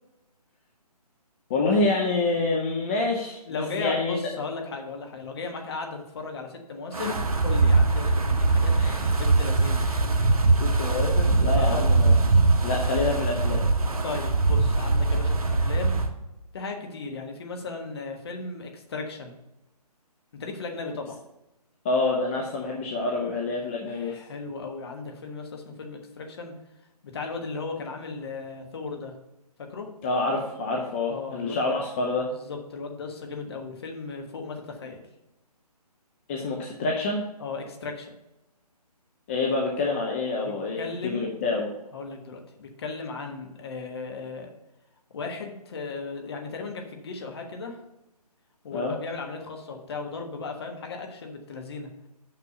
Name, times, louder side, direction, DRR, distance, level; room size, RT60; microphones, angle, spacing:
voice 1, 1.5-4.2 8.8-9.1 10.6-12.1 12.6-13.6 21.8-24.1 30.0-32.3 36.3-37.2 39.3-41.7 48.7-49.0, left 3 dB, 20° left, -1 dB, 0.7 m, -27 dB
voice 2, 3.5-8.7 9.1-9.8 11.6-11.9 14.0-16.0 16.5-19.3 20.3-21.2 23.8-26.5 27.0-29.1 29.6-29.9 31.1-31.8 32.3-35.1 37.4-38.2 40.4-41.3 41.9-44.5 45.1-47.8 48.6-51.9, left 4 dB, 40° left, 3 dB, 1.3 m, -36 dB
Wind, 6.9-16.1, right 3 dB, 60° right, 1.2 m, -22 dB
6.0 x 5.8 x 6.7 m, 0.94 s
figure-of-eight pair, 150°, 21 cm